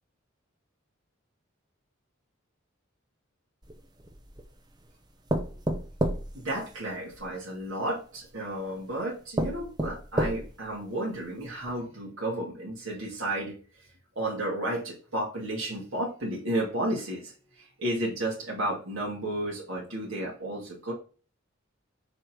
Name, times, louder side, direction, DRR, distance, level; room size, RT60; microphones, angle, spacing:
sound 1, 3.6-4.5 5.3-7.3 8.2-8.3 8.9-9.0 9.4-10.7 11.2-11.3 11.6-11.7, right 1 dB, 20° right, 0.7 m, -30 dB
voice 1, 6.3-13.9 14.2-20.9, right 1 dB, 75° right, -3 dB, 2.4 m, -32 dB
6.3 x 4.1 x 4.5 m, 0.37 s
head